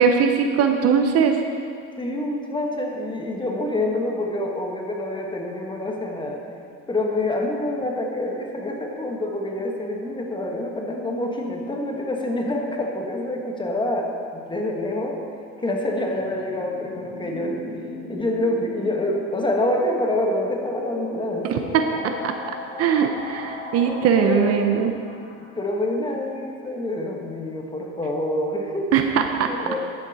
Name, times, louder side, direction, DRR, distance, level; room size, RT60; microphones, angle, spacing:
voice 1, 0.0-1.4 21.5-21.6 22.2-22.3 22.8-24.9 28.9-29.5, right 7 dB, 50° right, 5 dB, 0.7 m, -20 dB
voice 2, 2.0-6.4 6.9-15.2 15.6-17.6 18.1-21.7 23.8-24.6 24.9-25.0 25.6-28.9 29.5-29.8, left 1 dB, 15° left, 1 dB, 1.4 m, -27 dB
sound 1, 16.1-25.6, left 3 dB, 90° left, 2.3 m, -37 dB
10.5 x 7.6 x 4.2 m, 2.3 s
supercardioid pair, 110°, 32 cm